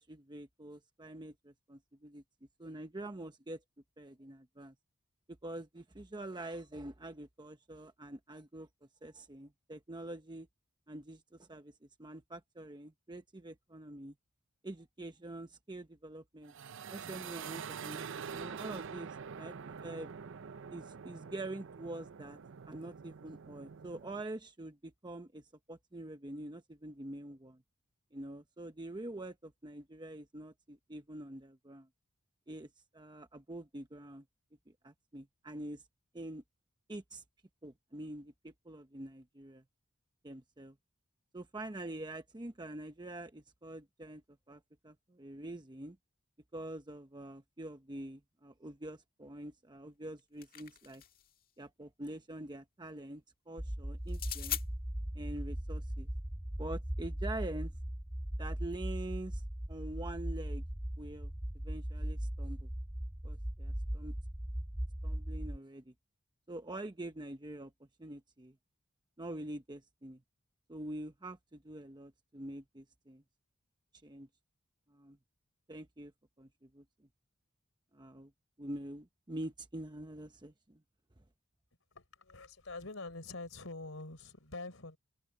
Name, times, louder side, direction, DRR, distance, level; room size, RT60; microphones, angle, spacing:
voice 1, 0.0-2.2 2.6-3.6 4.0-4.7 5.3-8.7 9.0-10.5 10.9-11.7 12.0-14.1 14.6-16.5 16.9-20.1 20.7-22.4 22.7-27.6 28.1-31.9 32.5-34.2 34.7-35.8 36.1-36.4 36.9-37.2 37.6-39.6 40.2-40.8 41.3-46.0 46.5-51.0 51.6-54.6 55.1-56.1 56.6-57.7 58.4-59.4 59.7-60.6 61.0-61.3 61.6-62.7 63.2-64.1 65.0-65.9 66.5-68.6 69.2-70.2 70.7-73.2 74.0-74.3 74.9-75.2 75.7-76.1 76.4-77.1 77.9-78.3 78.6-80.8, right 1 dB, 20° right, 0.9 m, -45 dB
sound 1, 16.4-24.2, right 6 dB, 65° right, 0.6 m, -46 dB
sound 2, 50.0-51.3 54.1-54.7, left 11 dB, 45° left, 1.7 m, -41 dB
sound 3, 53.6-65.6, equal, 5° right, 0.4 m, -38 dB
voice 2, 81.9-85.0, left 3 dB, 70° left, 4.6 m, -45 dB
head